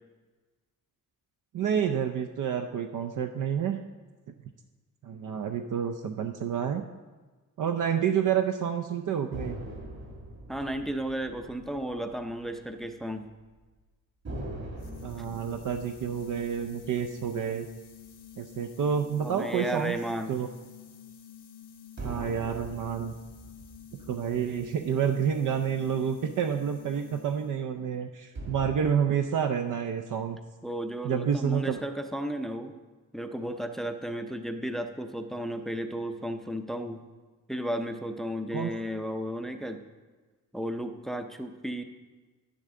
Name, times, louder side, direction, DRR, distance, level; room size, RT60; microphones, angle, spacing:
voice 1, 1.5-3.8 5.0-6.8 7.6-9.6 15.0-17.7 18.4-20.0 20.3-20.5 22.0-23.1 24.1-30.4 31.0-31.8 38.5-38.7, right 8 dB, 70° right, 6 dB, 0.6 m, -29 dB
sound 1, 9.3-13.0 13.3-13.5 14.2-18.9 22.0-25.6 28.4-28.8, right 1 dB, 55° right, 2.3 m, -43 dB
voice 2, 10.5-13.3 19.2-20.4 30.6-32.7 33.1-37.0 37.5-39.8 40.5-41.8, equal, ahead, 7 dB, 0.5 m, -34 dB
sound 2, 14.8-27.7, left 8 dB, 70° left, 1.1 m, -50 dB
11.0 x 10.0 x 3.7 m, 1.3 s
wide cardioid pair, 145°, 33 cm